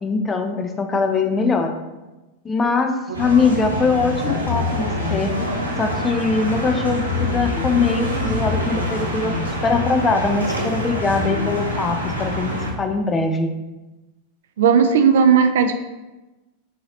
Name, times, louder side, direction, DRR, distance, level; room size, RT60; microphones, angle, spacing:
voice 1, 0.0-1.7 2.4-5.3 5.8-9.4 9.6-13.5, left 4 dB, 15° left, 5 dB, 0.4 m, -22 dB
sound 1, 3.1-12.7, left 1 dB, 85° right, 0.7 m, -25 dB
voice 2, 14.6-15.7, right 6 dB, 60° right, 7 dB, 0.3 m, -15 dB
4.0 x 3.8 x 2.7 m, 1.1 s
figure-of-eight pair, 90°, 0 cm